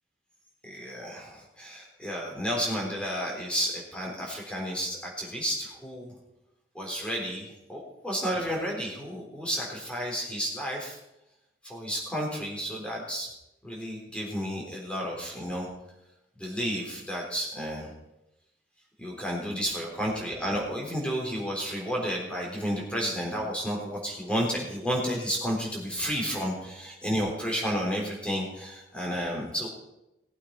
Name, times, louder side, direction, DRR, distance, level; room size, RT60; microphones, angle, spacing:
voice 1, 0.6-6.1 6.7-11.0 11.6-13.3 13.6-15.7 16.4-17.9 19.0-29.7, equal, 5° left, -2 dB, 3.8 m, -31 dB
19.0 x 8.4 x 4.7 m, 0.89 s
head